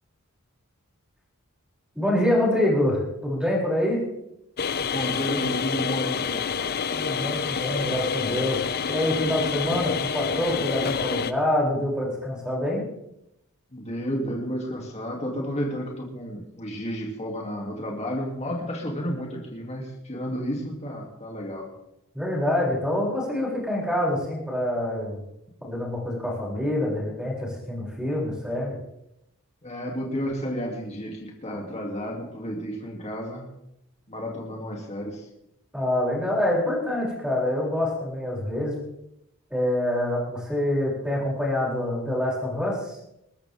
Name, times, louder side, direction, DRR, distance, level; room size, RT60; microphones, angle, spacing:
voice 1, 1.9-4.0 6.9-12.8 22.1-25.2 25.6-28.8 35.7-38.7 39.5-43.0, left 1 dB, 5° right, -4 dB, 7.0 m, -26 dB
sound 1, 4.6-11.3, left 6 dB, 45° left, 0.7 m, -28 dB
voice 2, 4.8-6.5 13.7-21.7 29.6-33.5 34.1-35.3, equal, 30° left, -1 dB, 2.8 m, -32 dB
22.0 x 13.5 x 3.7 m, 0.82 s
head